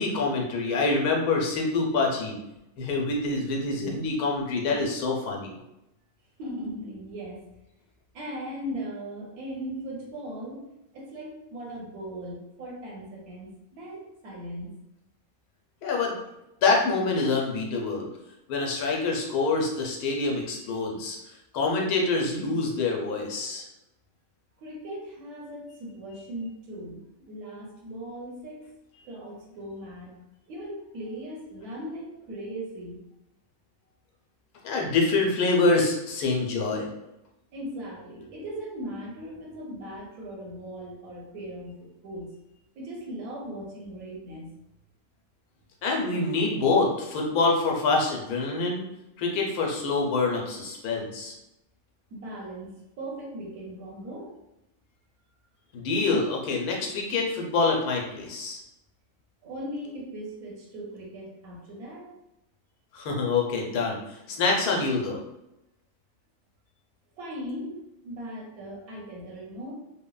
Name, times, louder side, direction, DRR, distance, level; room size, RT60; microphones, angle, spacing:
voice 1, 0.0-2.4 2.8-5.5 15.8-16.2 16.6-18.1 18.5-21.2 21.5-23.7 34.6-36.9 45.8-48.8 49.2-51.3 55.7-58.6 62.9-64.0 64.3-65.2, left 3 dB, 85° left, -1 dB, 1.1 m, -26 dB
voice 2, 6.4-7.4 8.1-10.7 10.9-14.7 24.6-27.0 27.3-28.7 29.0-30.2 30.5-33.0 37.5-42.3 42.7-44.5 52.1-54.3 59.4-62.1 67.2-67.8 68.0-69.7, equal, 80° right, -2 dB, 1.2 m, -38 dB
3.1 x 2.1 x 2.3 m, 0.88 s
omnidirectional pair, 1.6 m